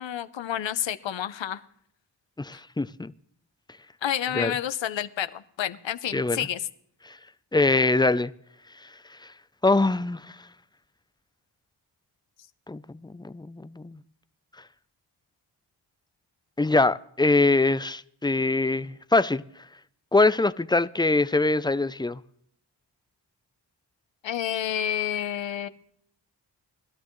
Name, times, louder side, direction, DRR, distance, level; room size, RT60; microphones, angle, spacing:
voice 1, 0.0-1.6 4.0-6.7 24.2-25.7, left 10 dB, 85° left, 0.9 m, -29 dB
voice 2, 2.4-3.1 4.3-4.5 6.1-6.5 7.0-7.2 7.5-8.3 8.8-8.9 9.6-10.4 12.7-14.0 16.6-19.4 20.1-22.2, left 2 dB, 10° left, 0.5 m, -23 dB
20.5 x 12.5 x 3.2 m
cardioid pair, 60°, 43 cm